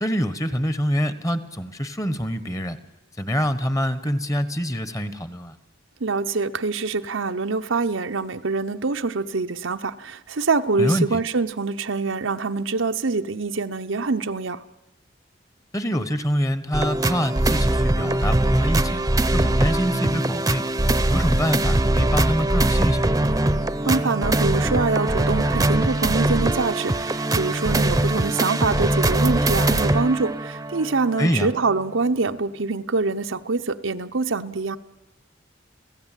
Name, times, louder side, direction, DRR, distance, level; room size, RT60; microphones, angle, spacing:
voice 1, 0.0-2.8 3.2-5.6 10.8-11.2 15.7-19.0 19.3-20.7 21.1-23.2 31.2-31.5, equal, 15° left, 1.1 m, -25 dB
voice 2, 6.0-14.6 23.8-34.8, right 4 dB, 85° right, 0.9 m, -25 dB
sound 1, 16.7-31.3 31.8-31.9, right 1 dB, 20° right, 0.8 m, -22 dB
29.5 x 16.5 x 9.1 m
head